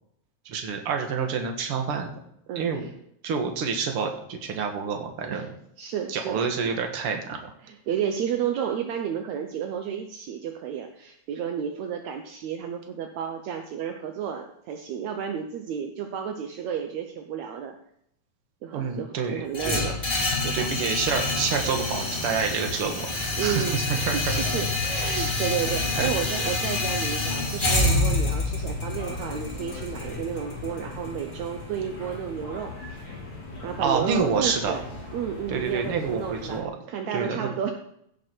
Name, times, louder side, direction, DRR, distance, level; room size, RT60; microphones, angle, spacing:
voice 1, 0.5-2.1 2.6-2.9 3.2-5.5 6.1-7.5 18.7-19.9 20.5-24.4 25.1-25.5 26.0-26.1 33.8-34.7 35.5-36.7 37.1-37.5, right 6 dB, 50° right, 4 dB, 2.2 m, -28 dB
voice 2, 2.5-2.9 5.3-5.5 5.8-6.4 7.6-17.8 18.6-19.9 20.4-20.7 23.4-32.7 33.6-34.9 35.1-37.7, right 8 dB, 75° right, 4 dB, 2.1 m, -32 dB
sound 1, 19.5-31.6, left 2 dB, 20° left, 1.6 m, -27 dB
sound 2, 21.1-36.6, left 3 dB, 60° left, 5.1 m, -39 dB
16.0 x 6.8 x 4.5 m, 0.73 s
omnidirectional pair, 3.5 m